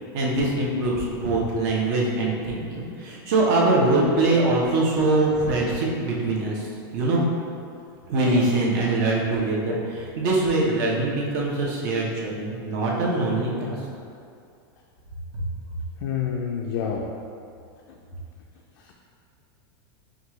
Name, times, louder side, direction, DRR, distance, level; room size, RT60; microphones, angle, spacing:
voice 1, 0.1-6.7 6.9-7.2 8.1-13.8, right 2 dB, 50° right, -4 dB, 0.9 m, -23 dB
voice 2, 16.0-17.1, left 7 dB, 60° left, -1 dB, 0.4 m, -27 dB
5.2 x 2.4 x 3.1 m, 2.4 s
supercardioid pair, 150°, 12 cm